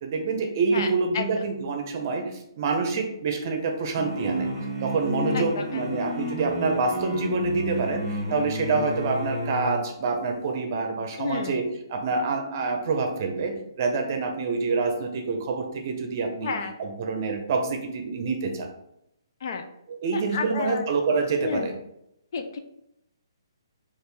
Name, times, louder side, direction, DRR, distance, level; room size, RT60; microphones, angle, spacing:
voice 1, 0.0-4.5 4.8-16.5 16.8-18.7 19.9-21.7, right 4 dB, 40° right, 4 dB, 0.7 m, -27 dB
voice 2, 0.7-1.3 5.3-6.0 11.2-11.6 16.4-16.7 19.4-19.6 20.1-20.8 21.4-21.7 22.3-22.6, left 5 dB, 50° left, 6 dB, 0.5 m, -31 dB
sound 1, 3.9-9.8, equal, ahead, 1.5 m, -31 dB
4.2 x 2.6 x 3.3 m, 0.80 s
hypercardioid pair, 155°, 3 cm